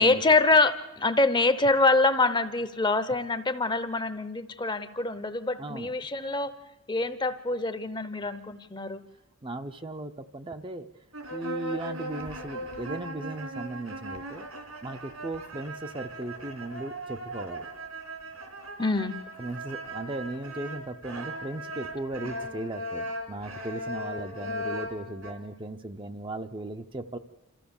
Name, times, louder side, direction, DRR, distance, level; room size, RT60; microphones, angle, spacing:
voice 1, 0.0-6.5 6.9-9.0 18.8-19.1, left 3 dB, 20° left, 12 dB, 0.7 m, -25 dB
voice 2, 5.6-6.0 9.4-10.9 11.3-14.5 14.8-17.7 19.4-27.2, right 2 dB, 25° right, 7 dB, 0.6 m, -37 dB
sound 1, 11.1-25.3, equal, 80° right, 3.3 m, -38 dB
28.0 x 14.0 x 7.0 m, 1.0 s
head